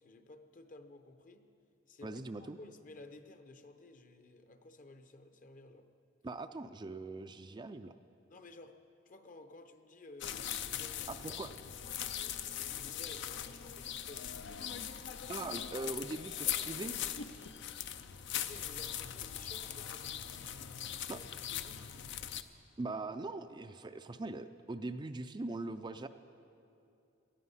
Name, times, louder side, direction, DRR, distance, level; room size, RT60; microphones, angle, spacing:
voice 1, 0.0-1.5 1.9-5.9 8.3-8.8 9.1-11.3 12.2-14.3 18.3-22.1, left 2 dB, 40° left, 8 dB, 0.9 m, -55 dB
voice 2, 2.0-2.6 6.2-7.9 11.1-11.5 15.3-17.0 21.1-21.2 22.8-26.1, right 2 dB, 25° right, 8 dB, 0.4 m, -41 dB
sound 1, 10.2-22.4, left 10 dB, 65° left, 0.6 m, -40 dB
19.0 x 13.0 x 5.6 m, 2.7 s
head